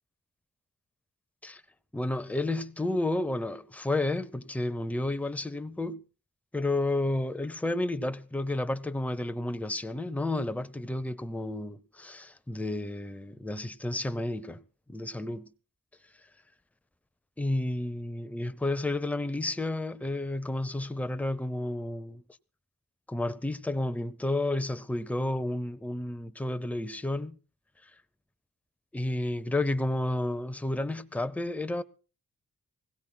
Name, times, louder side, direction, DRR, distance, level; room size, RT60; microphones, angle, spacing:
voice 1, 1.9-6.0 6.5-14.6 14.9-15.5 17.4-22.2 23.1-27.4 28.9-31.8, left 2 dB, 5° left, 0.7 m, -31 dB
24.5 x 16.5 x 2.3 m
wide cardioid pair, 100°, 35 cm